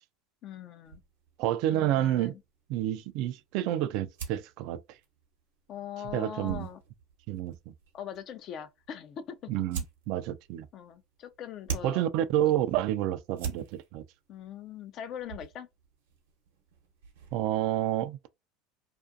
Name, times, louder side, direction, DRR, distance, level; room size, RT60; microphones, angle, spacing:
voice 1, 0.4-1.0 1.7-2.4 5.7-6.8 7.9-9.5 10.7-12.1 14.3-15.7, left 9 dB, 50° left, 0.4 m, -41 dB
sound 1, 0.8-17.7, right 6 dB, 85° right, 0.9 m, -45 dB
voice 2, 1.4-2.3 2.7-4.8 6.1-6.7 7.3-7.7 9.5-10.7 11.8-14.0 17.3-18.3, right 13 dB, 65° right, 0.3 m, -29 dB
2.4 x 2.4 x 2.5 m
hypercardioid pair, 90°, 0 cm